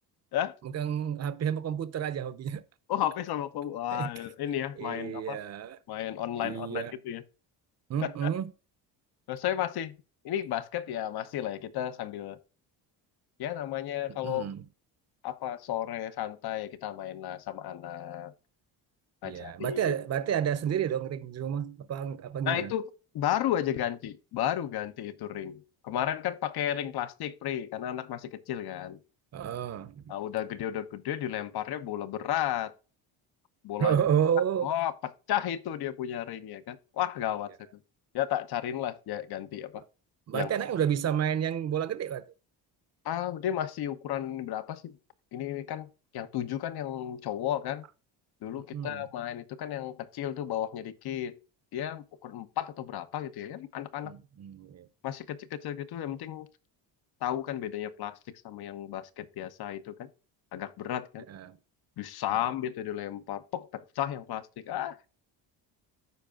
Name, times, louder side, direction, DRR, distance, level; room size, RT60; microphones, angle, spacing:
voice 1, 0.6-2.6 3.9-4.1 4.8-5.8 6.4-6.9 7.9-8.5 14.1-14.6 19.2-22.7 29.3-30.1 33.8-34.7 40.3-42.3 48.7-49.1 54.0-54.9 61.3-61.6 62.3-62.5, right 9 dB, 40° right, 0.7 m, -30 dB
voice 2, 2.9-5.4 5.9-7.2 8.0-8.3 9.3-10.0 10.2-12.4 13.4-14.5 15.2-18.3 19.2-20.0 22.5-29.0 30.1-32.7 33.6-34.0 34.6-34.9 35.3-37.5 38.1-39.8 40.3-40.5 43.0-45.0 45.3-45.9 46.1-47.9 48.4-51.4 51.7-54.1 55.0-56.5 57.2-58.2 58.4-60.1 60.5-61.3 62.0-65.1, left 11 dB, 60° left, 0.9 m, -33 dB
14.0 x 4.6 x 2.4 m
cardioid pair, 100°, 42 cm